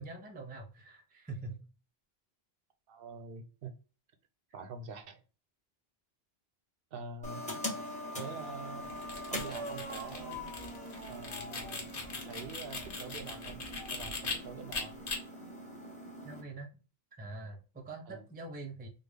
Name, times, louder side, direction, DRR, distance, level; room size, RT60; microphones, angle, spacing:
voice 1, 0.0-1.7 16.2-16.7 17.2-18.9, right 3 dB, 15° right, 3 dB, 0.3 m, -44 dB
voice 2, 2.9-3.8 4.5-5.2 6.9-7.4 8.1-8.9 9.3-10.5 11.1-11.9 12.3-14.9 18.1-18.2, right 4 dB, 65° right, 7 dB, 0.7 m, -45 dB
sound 1, 7.2-16.4, equal, 10° left, 0.8 m, -42 dB
sound 2, 8.8-14.3 14.7-15.2, left 4 dB, 60° left, 1.1 m, -40 dB
3.6 x 2.1 x 3.2 m, 0.35 s
omnidirectional pair, 1.1 m